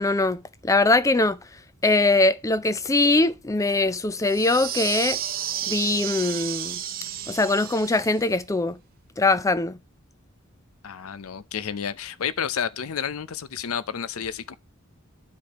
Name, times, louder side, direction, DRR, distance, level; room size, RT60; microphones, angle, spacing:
voice 1, 0.0-1.4 1.8-5.2 5.7-6.8 7.3-8.8 9.2-9.8, left 2 dB, 15° left, 0.4 m, -22 dB
sound 1, 4.2-8.3, right 11 dB, 45° right, 0.7 m, -32 dB
voice 2, 10.8-14.5, left 7 dB, 80° left, 0.6 m, -30 dB
12.0 x 4.8 x 2.9 m
head